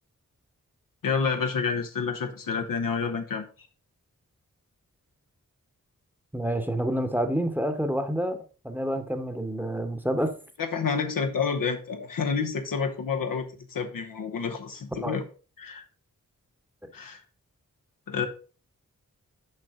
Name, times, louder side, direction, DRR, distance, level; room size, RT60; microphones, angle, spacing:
voice 1, 1.0-3.5 10.6-13.5 13.7-15.2 15.6-15.8 16.9-17.2 18.1-18.3, left 5 dB, 90° left, 5 dB, 0.9 m, -29 dB
voice 2, 6.3-8.4 8.6-10.4 15.0-15.2 16.8-16.9, right 1 dB, 5° right, 7 dB, 0.9 m, -28 dB
6.5 x 5.1 x 3.6 m, 0.36 s
cardioid pair, 50°, 33 cm